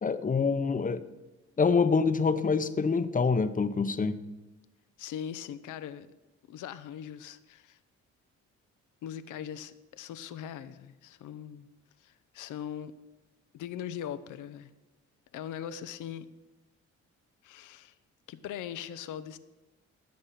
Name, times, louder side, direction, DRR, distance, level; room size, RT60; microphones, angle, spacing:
voice 1, 0.0-1.0 1.6-4.2, left 5 dB, 25° left, 11 dB, 0.8 m, -26 dB
voice 2, 5.0-6.1 6.5-7.8 9.0-11.7 12.0-12.9 13.5-14.7 15.3-16.3 17.4-17.9 18.3-19.4, left 9 dB, 85° left, 13 dB, 0.8 m, -40 dB
14.0 x 6.7 x 5.9 m, 1.1 s
cardioid pair, 90°, 30 cm